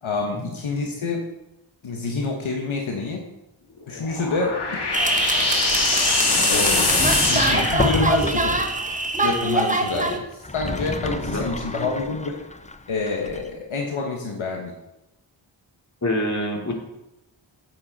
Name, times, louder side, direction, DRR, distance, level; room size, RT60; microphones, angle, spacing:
voice 1, 0.0-1.2 1.8-3.3 3.9-4.6 6.5-8.7 9.2-12.4 12.9-14.7, left 3 dB, 75° left, 0 dB, 1.4 m, -27 dB
sound 1, 3.9-8.4, left 3 dB, 55° left, 2.0 m, -23 dB
sound 2, 4.9-10.2, right 2 dB, 15° right, 1.2 m, -23 dB
Sliding door, 6.2-8.7 10.3-13.5, left 3 dB, 15° left, 0.6 m, -30 dB
voice 2, 11.0-11.5 16.0-16.7, left 1 dB, 35° left, -1 dB, 2.7 m, -26 dB
9.5 x 7.7 x 4.2 m, 0.93 s
cardioid pair, 50°, 48 cm